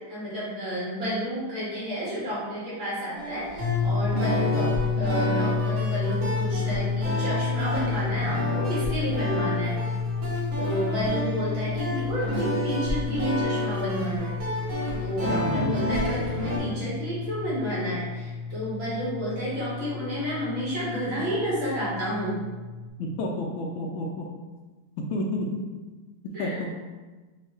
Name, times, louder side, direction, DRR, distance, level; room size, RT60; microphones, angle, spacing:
voice 1, 0.1-9.8 10.6-14.4 14.7-22.4 26.3-26.6, equal, 70° right, -8 dB, 2.5 m, -31 dB
sound 1, 3.1-16.6, equal, 45° right, 1.2 m, -31 dB
sound 2, 3.6-22.9, left 5 dB, 25° left, 1.1 m, -31 dB
voice 2, 23.0-24.3 25.1-25.6 26.4-26.7, left 1 dB, 75° left, 0 dB, 1.3 m, -30 dB
5.2 x 2.7 x 3.2 m, 1.3 s
omnidirectional pair, 2.3 m